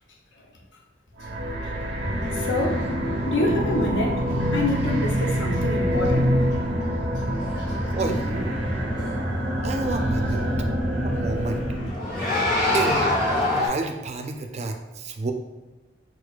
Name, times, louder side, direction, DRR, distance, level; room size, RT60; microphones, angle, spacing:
sound 1, 1.2-12.0, equal, 90° right, 0.6 m, -26 dB
sound 2, 2.0-13.5, left 1 dB, 30° left, 0.7 m, -32 dB
voice 1, 2.3-2.9 3.2-6.4, left 1 dB, 85° left, 1 dB, 0.6 m, -27 dB
sound 3, 5.7-13.7, left 1 dB, 50° left, 1.1 m, -29 dB
voice 2, 7.9-8.5 9.6-10.4 11.0-11.6 12.7-13.1 13.4-15.3, right 3 dB, 40° right, 5 dB, 0.3 m, -29 dB
4.4 x 2.3 x 2.3 m, 1.1 s
head